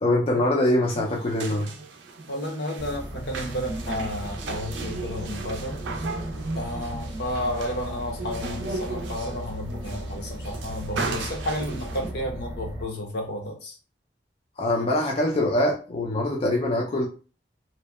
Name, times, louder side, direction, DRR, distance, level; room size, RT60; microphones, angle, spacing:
voice 1, 0.0-1.7 14.6-17.1, left 1 dB, 35° left, -1 dB, 0.4 m, -23 dB
sound 1, 0.8-12.1, right 3 dB, 80° right, 0.4 m, -36 dB
voice 2, 2.3-5.8 6.5-13.7, left 1 dB, 65° left, 2 dB, 0.7 m, -32 dB
sound 2, 2.8-12.8, equal, 10° right, 0.8 m, -37 dB
2.7 x 2.1 x 2.2 m, 0.35 s
head